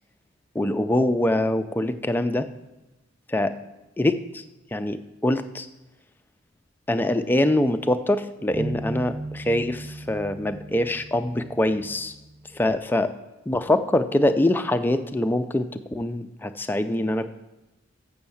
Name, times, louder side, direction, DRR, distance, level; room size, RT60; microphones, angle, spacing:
voice 1, 0.6-2.5 3.3-3.5 4.0-4.4 4.7-5.7 6.9-12.1 12.5-13.1 13.5-17.3, left 1 dB, 10° left, 8 dB, 0.3 m, -24 dB
sound 1, 8.5-12.8, right 2 dB, 10° right, 0.8 m, -37 dB
7.1 x 6.5 x 7.0 m, 1.0 s
head